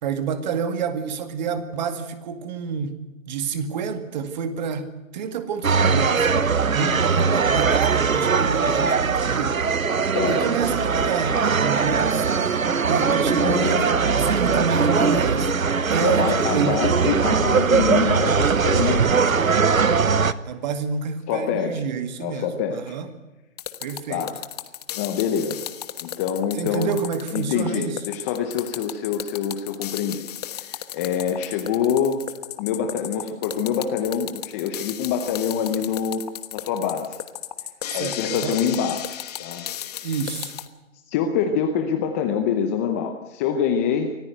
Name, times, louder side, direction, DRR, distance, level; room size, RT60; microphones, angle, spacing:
voice 1, 0.0-3.0 3.3-4.9 5.1-6.4 6.7-9.6 10.2-15.5 15.9-16.8 20.4-23.1 23.8-24.2 26.6-28.0 37.9-38.6 40.0-40.5, right 6 dB, 35° right, 10 dB, 2.1 m, -28 dB
sound 1, 5.6-20.3, right 5 dB, 90° right, 1.2 m, -20 dB
voice 2, 13.2-13.9 15.0-15.2 16.0-19.5 21.3-21.8 22.2-22.9 24.1-24.3 25.0-25.7 26.0-26.9 27.3-30.3 30.6-32.2 32.6-36.2 36.5-37.2 37.9-39.6 41.1-44.2, left 7 dB, 10° left, 6 dB, 0.7 m, -25 dB
sound 2, 23.6-40.7, left 11 dB, 30° left, 1.1 m, -34 dB
24.5 x 15.0 x 7.9 m, 1.1 s
hypercardioid pair, 145°, 40 cm